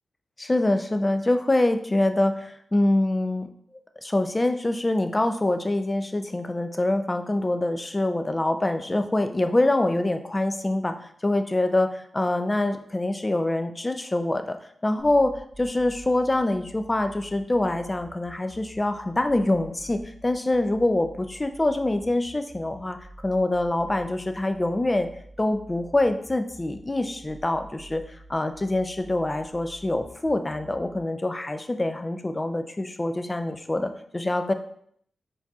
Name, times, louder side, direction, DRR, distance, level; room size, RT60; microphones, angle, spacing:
voice 1, 0.4-3.5 4.0-10.9 11.2-11.9 12.1-14.6 14.8-23.0 23.2-25.1 25.4-28.0 28.3-34.5, left 2 dB, 25° left, 8 dB, 0.4 m, -25 dB
sound 1, 15.0-31.0, right 1 dB, 55° left, 1.3 m, -48 dB
4.6 x 4.1 x 2.3 m, 0.66 s
cardioid pair, 55°, 0 cm